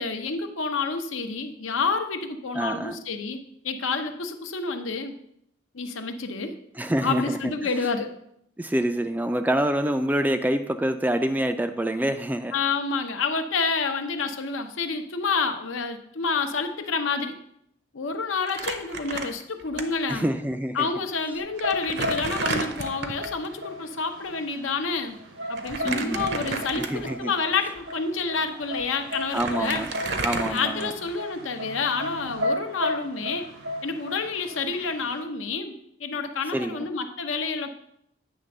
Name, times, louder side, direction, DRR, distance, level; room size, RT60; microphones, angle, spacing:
voice 1, 0.0-5.1 5.7-6.5 7.0-8.1 12.5-17.4 17.9-20.3 20.7-25.2 25.5-29.9 30.2-33.5 33.8-35.7 36.0-37.7, left 4 dB, 85° left, 6 dB, 0.8 m, -29 dB
voice 2, 2.5-3.0 6.8-7.5 8.6-12.6 20.1-20.9 25.8-26.3 26.8-27.3 29.3-29.9 30.2-30.9 36.5-36.9, right 1 dB, 10° right, 8 dB, 0.3 m, -26 dB
Crumpling crinkling, 18.5-19.8 20.1-20.2 21.1-21.2 21.6-23.4 25.6-27.2 27.8-27.9 28.8-28.9 29.1-31.2, right 3 dB, 55° right, 0.7 m, -31 dB
sound 1, 21.4-35.2, left 1 dB, 85° right, 1.2 m, -35 dB
8.9 x 3.4 x 6.5 m, 0.75 s
head